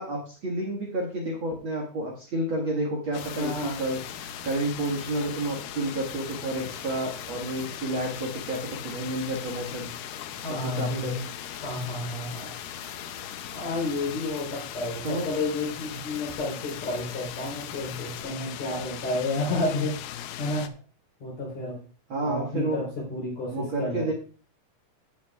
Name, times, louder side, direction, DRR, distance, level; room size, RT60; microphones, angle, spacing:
voice 1, 0.0-4.0 4.4-9.9 10.5-11.2 15.0-15.3 22.1-22.8 23.5-24.1, right 1 dB, 45° right, -2 dB, 2.1 m, -30 dB
sound 1, 3.1-20.7, left 11 dB, 80° left, 2.3 m, -39 dB
sound 2, 3.2-18.2, right 3 dB, 80° right, 4.3 m, -50 dB
voice 2, 3.4-3.8 10.4-11.2 11.6-12.5 13.5-20.0 20.4-20.7 21.2-21.8 22.2-24.1, left 2 dB, 50° left, -4 dB, 4.9 m, -31 dB
16.5 x 8.9 x 2.4 m, 0.40 s
omnidirectional pair, 4.0 m